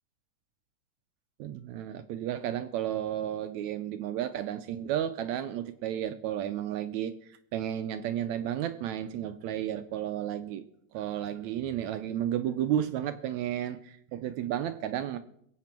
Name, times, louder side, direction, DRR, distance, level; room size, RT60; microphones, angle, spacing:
voice 1, 1.4-10.6 10.9-15.2, right 11 dB, 75° right, 11 dB, 1.9 m, -32 dB
23.0 x 8.3 x 4.5 m, 0.69 s
omnidirectional pair, 3.6 m